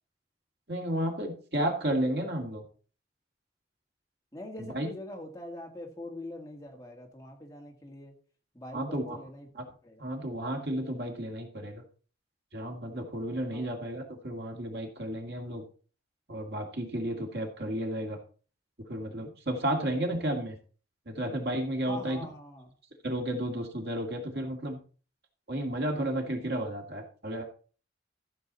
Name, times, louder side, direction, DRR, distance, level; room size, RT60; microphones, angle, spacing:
voice 1, 0.7-2.6 4.6-4.9 8.7-9.2 9.5-9.6 10.0-11.8 12.5-15.6 16.3-18.2 18.9-20.6 21.1-22.2 23.0-24.8 25.5-27.4, right 1 dB, 65° right, 3 dB, 2.3 m, -32 dB
voice 2, 4.3-8.1 8.5-9.5 9.8-10.1 13.5-13.8 21.8-22.7, left 1 dB, 20° left, 1 dB, 2.0 m, -43 dB
14.0 x 7.1 x 4.1 m, 0.38 s
head